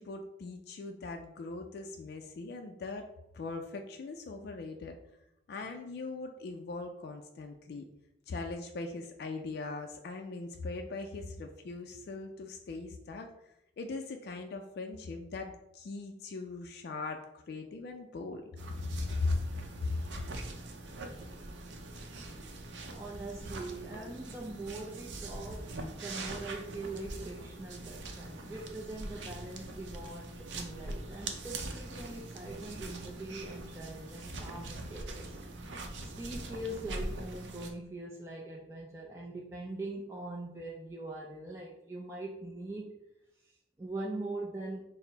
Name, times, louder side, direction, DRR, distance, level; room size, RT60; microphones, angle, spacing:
voice 1, 0.0-3.1 3.3-5.0 5.5-7.9 8.3-13.3 13.8-18.4 18.9-19.4 19.8-20.0, left 3 dB, 60° left, 3 dB, 0.3 m, -39 dB
sound 1, 18.6-37.7, right 2 dB, 80° right, 0.5 m, -42 dB
voice 2, 22.9-35.5 36.0-43.0 43.4-44.8, right 2 dB, 15° right, -3 dB, 0.3 m, -42 dB
4.2 x 2.0 x 3.9 m, 0.83 s
head